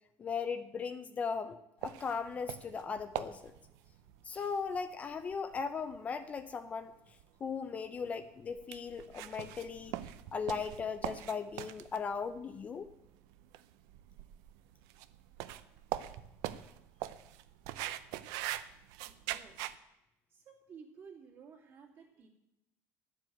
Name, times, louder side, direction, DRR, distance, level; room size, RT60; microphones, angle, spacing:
voice 1, 0.2-3.5 4.2-6.9 7.4-9.9 10.3-12.9, left 5 dB, 25° left, 9 dB, 0.5 m, -38 dB
sound 1, 1.8-19.8, right 13 dB, 75° right, 0.7 m, -44 dB
voice 2, 19.0-19.7 20.3-22.3, right 6 dB, 40° right, 0 dB, 2.7 m, -55 dB
11.5 x 7.6 x 9.2 m, 0.87 s
cardioid pair, 165°, 6 cm